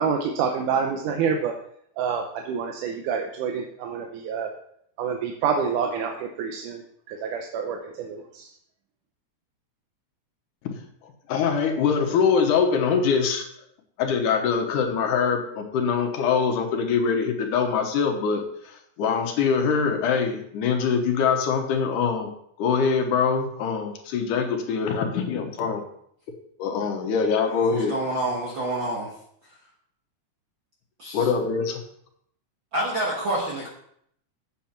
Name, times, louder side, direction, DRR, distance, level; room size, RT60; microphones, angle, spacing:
voice 1, 0.0-1.6 2.0-4.5 5.0-8.5, right 6 dB, 85° right, 3 dB, 2.3 m, -27 dB
voice 2, 11.3-13.5 14.0-18.4 19.0-22.3 22.6-25.8 26.6-27.9 31.1-31.8, left 6 dB, 85° left, 4 dB, 2.7 m, -23 dB
voice 3, 27.5-29.1 31.0-31.3 32.7-33.7, right 1 dB, 50° right, -4 dB, 1.7 m, -28 dB
8.4 x 7.3 x 4.4 m, 0.70 s
omnidirectional pair, 3.5 m